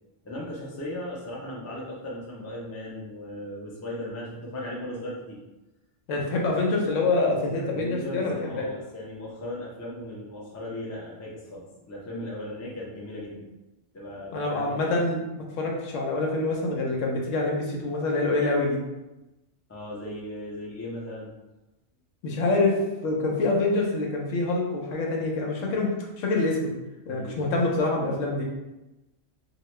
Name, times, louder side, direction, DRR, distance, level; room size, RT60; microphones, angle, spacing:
voice 1, 0.2-5.4 7.5-13.4 13.9-15.0 19.7-21.3 27.1-27.4, left 1 dB, 25° left, -4 dB, 0.3 m, -37 dB
voice 2, 6.1-8.7 14.3-18.8 22.2-26.7 27.1-28.4, left 2 dB, 80° left, 0 dB, 1.0 m, -26 dB
2.9 x 2.2 x 3.1 m, 1.0 s
omnidirectional pair, 1.3 m